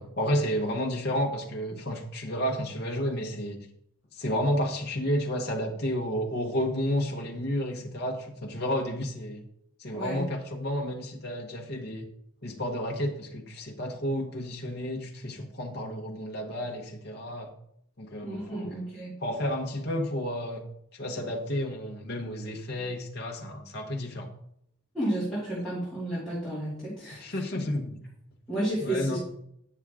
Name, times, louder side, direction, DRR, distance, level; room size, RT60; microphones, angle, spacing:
voice 1, 0.0-3.6 4.1-9.4 9.8-12.1 12.4-17.5 18.0-18.7 19.2-20.6 20.9-24.3 27.2-28.0 28.8-29.2, equal, 50° left, 0 dB, 1.1 m, -31 dB
voice 2, 9.9-10.3 18.2-19.1 24.9-27.6 28.5-29.2, right 1 dB, 5° left, -12 dB, 2.7 m, -32 dB
8.5 x 6.3 x 3.6 m, 0.73 s
head